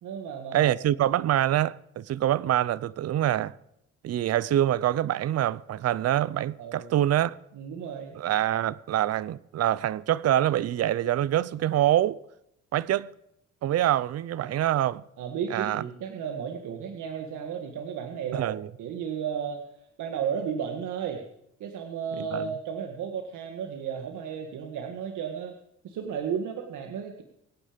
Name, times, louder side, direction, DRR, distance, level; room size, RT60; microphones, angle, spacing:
voice 1, 0.0-0.7 6.6-6.9 7.5-8.2 14.4-14.5 15.2-19.6 20.0-21.2 21.6-25.5 25.8-27.2, right 7 dB, 80° right, 1.9 m, -33 dB
voice 2, 0.5-3.5 4.0-7.4 8.1-12.2 12.7-13.1 13.6-15.0 15.5-15.8 18.3-18.7 22.2-22.4, right 12 dB, 55° right, 0.6 m, -25 dB
24.5 x 9.4 x 5.2 m
cardioid pair, 90°, 30 cm